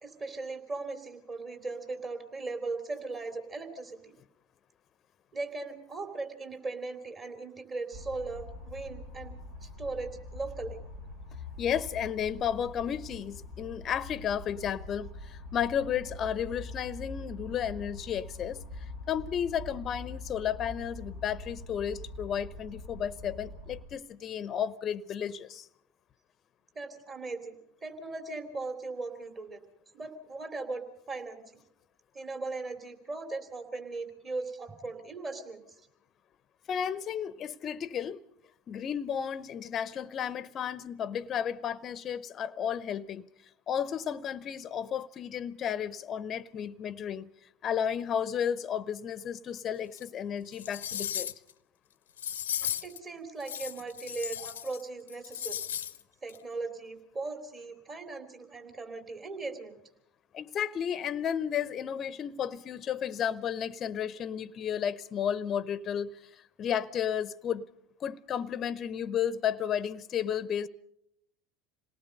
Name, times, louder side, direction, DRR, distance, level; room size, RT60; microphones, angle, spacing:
voice 1, 0.0-4.1 5.3-10.8 26.7-29.6 29.9-31.4 32.1-35.6 52.6-55.6 56.2-59.8, right 3 dB, 30° right, 3.2 m, -38 dB
sound 1, 7.9-23.8, left 2 dB, 80° right, 4.9 m, -44 dB
voice 2, 11.6-25.7 36.7-38.2 38.7-43.3 43.7-47.3 47.6-51.3 60.3-67.7 68.0-70.7, left 8 dB, 40° left, 0.7 m, -33 dB
sound 2, 50.0-50.1 50.5-51.5 52.2-53.0 53.4-54.8 55.1-56.0 56.3-56.4, left 10 dB, 85° left, 0.7 m, -36 dB
27.0 x 18.5 x 5.4 m
hypercardioid pair, 75°, 0 cm